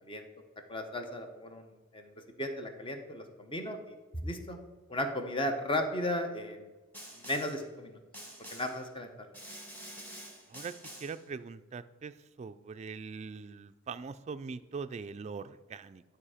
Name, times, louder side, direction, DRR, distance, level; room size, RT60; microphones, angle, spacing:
voice 1, 0.7-4.0 4.2-4.6 4.9-6.7 7.2-8.0 8.5-9.1, left 1 dB, 25° left, 5 dB, 0.9 m, -35 dB
Snare drum, 6.9-7.6 8.1-8.8 9.3-11.2, right 1 dB, 10° left, 1.5 m, -47 dB
voice 2, 10.5-16.0, right 5 dB, 35° right, 10 dB, 0.3 m, -42 dB
11.5 x 4.7 x 5.0 m, 1.2 s
head